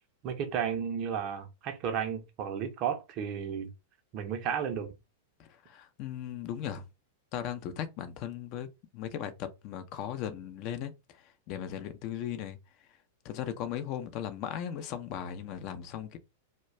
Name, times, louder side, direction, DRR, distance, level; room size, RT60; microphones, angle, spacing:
voice 1, 0.2-3.7 4.1-4.9, right 8 dB, 40° right, 0.6 m, -33 dB
voice 2, 5.4-6.8 7.3-8.7 8.9-12.6 13.2-16.2, left 10 dB, 40° left, 0.4 m, -37 dB
2.2 x 2.1 x 3.0 m
figure-of-eight pair, 95°, 0 cm